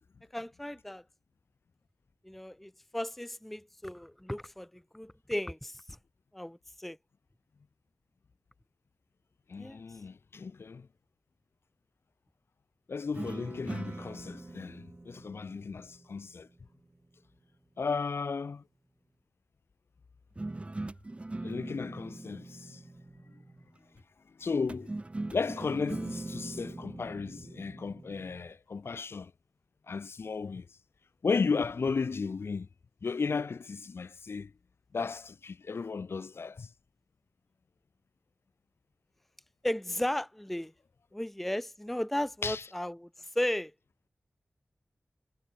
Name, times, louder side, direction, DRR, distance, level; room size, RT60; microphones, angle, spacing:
voice 1, 0.3-1.0 2.2-5.8 6.3-7.0 9.6-9.8 39.6-40.7 41.1-43.1 43.4-43.7, left 1 dB, 5° left, 0.3 m, -35 dB
voice 2, 9.5-10.9 12.9-16.5 17.8-18.6 21.4-22.8 23.3-23.4 24.4-24.9 25.3-29.3 29.9-30.7 31.2-32.7 33.0-34.5 34.9-36.7 42.4-42.6, left 5 dB, 75° left, 0.7 m, -34 dB
sound 1, 13.1-16.5 20.4-23.8 24.7-28.5, right 2 dB, 30° right, 0.7 m, -41 dB
wide cardioid pair, 60°, 4 cm